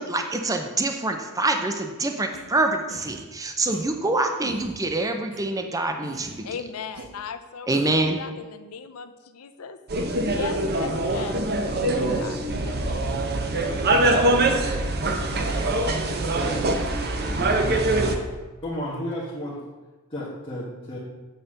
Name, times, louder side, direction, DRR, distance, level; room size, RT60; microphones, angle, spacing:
voice 1, 0.0-6.4 7.7-8.2, right 2 dB, 15° right, 5 dB, 0.5 m, -25 dB
sound 1, 2.3-2.4 2.9-3.2 3.7-3.8 4.4-4.7 5.3-5.4 6.0-6.4 6.9-7.0 7.7-8.1, right 1 dB, 75° right, 1.5 m, -40 dB
voice 2, 6.4-12.8, left 6 dB, 70° left, 10 dB, 0.6 m, -38 dB
sound 2, 9.9-18.2, right 2 dB, 45° right, 0.8 m, -23 dB
voice 3, 17.3-18.2 18.6-19.6 20.1-21.0, equal, 25° left, -7 dB, 1.3 m, -32 dB
7.9 x 4.2 x 6.3 m, 1.2 s
head